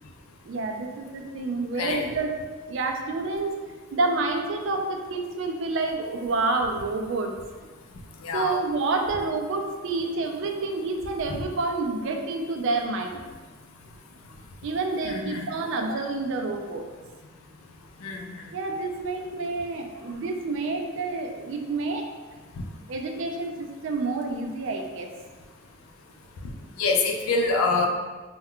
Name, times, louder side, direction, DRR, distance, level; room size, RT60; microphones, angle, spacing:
voice 1, 0.4-2.3 2.7-3.6 3.9-7.3 8.3-13.2 14.6-16.9 18.5-22.1 22.9-25.1, right 3 dB, 60° right, 3 dB, 0.3 m, -28 dB
voice 2, 1.7-2.1 8.2-8.6 11.3-11.4 15.0-15.5 18.0-18.5 22.6-22.7 26.8-27.9, left 3 dB, 80° left, 2 dB, 0.4 m, -26 dB
2.2 x 2.2 x 3.6 m, 1.3 s
head